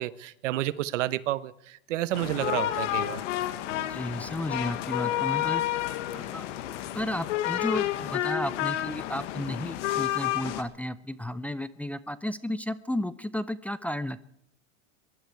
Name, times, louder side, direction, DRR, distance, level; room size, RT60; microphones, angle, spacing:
voice 1, 0.0-3.2, right 14 dB, 85° right, 17 dB, 1.0 m, -30 dB
sound 1, 2.1-10.6, left 13 dB, 80° left, 1.6 m, -30 dB
voice 2, 3.8-5.6 6.1-6.5 6.9-14.2, left 1 dB, 5° left, 13 dB, 0.5 m, -33 dB
22.5 x 12.0 x 4.6 m, 0.74 s
supercardioid pair, 125°, 36 cm